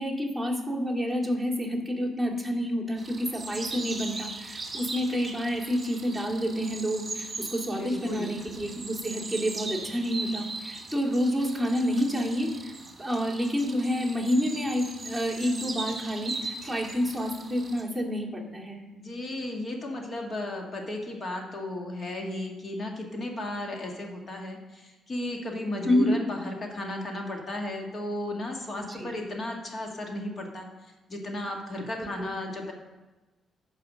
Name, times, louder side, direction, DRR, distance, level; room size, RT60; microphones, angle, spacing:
voice 1, 0.0-18.8 25.8-26.2 28.9-29.1 32.0-32.3, equal, 5° left, -2 dB, 2.3 m, -29 dB
sound 1, 3.0-17.8, right 3 dB, 30° right, 1.6 m, -39 dB
voice 2, 7.7-8.3 18.9-30.7 31.1-32.7, left 1 dB, 40° left, 2 dB, 1.7 m, -34 dB
11.0 x 4.8 x 6.4 m, 1.1 s
cardioid pair, 90°, 0 cm